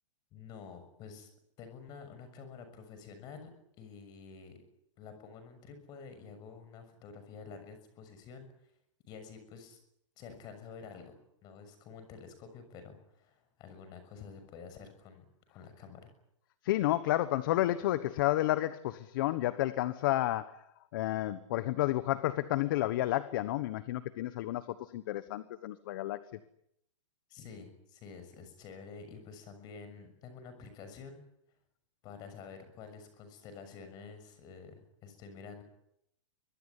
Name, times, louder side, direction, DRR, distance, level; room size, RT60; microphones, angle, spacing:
voice 1, 0.3-1.3 1.6-3.5 3.8-4.6 5.0-8.5 9.1-9.8 10.2-16.1 27.3-31.2 32.0-35.6, left 5 dB, 25° left, 9 dB, 6.7 m, -49 dB
voice 2, 16.6-20.6 20.9-26.2, left 15 dB, 40° left, 14 dB, 1.2 m, -31 dB
24.5 x 20.5 x 9.9 m, 0.76 s
hypercardioid pair, 160°, 16 cm